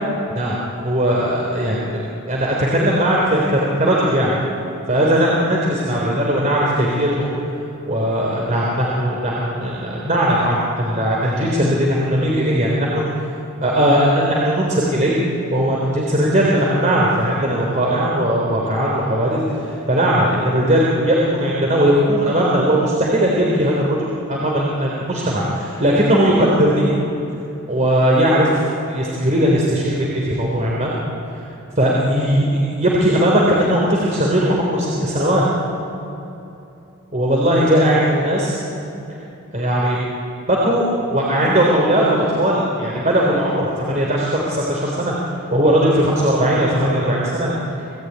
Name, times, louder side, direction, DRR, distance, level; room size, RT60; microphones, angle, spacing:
voice 1, 0.4-1.9 2.3-4.4 4.9-7.3 7.9-13.1 13.6-15.1 15.5-19.4 19.9-26.9 27.7-28.5 28.9-30.9 31.8-35.4 37.1-38.6 39.5-40.0 40.5-40.8 41.1-45.1 45.5-47.5, equal, 35° right, -3 dB, 3.6 m, -18 dB
28.5 x 18.0 x 9.5 m, 2.9 s
head